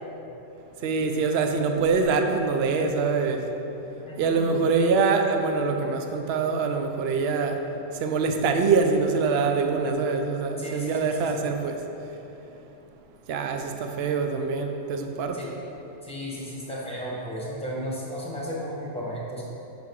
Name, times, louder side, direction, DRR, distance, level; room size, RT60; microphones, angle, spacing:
voice 1, 0.8-3.5 4.2-7.6 8.0-11.8 13.3-15.4, right 4 dB, 60° right, 5 dB, 0.8 m, -24 dB
voice 2, 4.0-4.4 10.6-11.2 15.3-15.5 16.0-19.4, equal, 5° left, -5 dB, 1.5 m, -34 dB
10.5 x 5.9 x 3.7 m, 3.0 s
omnidirectional pair, 1.3 m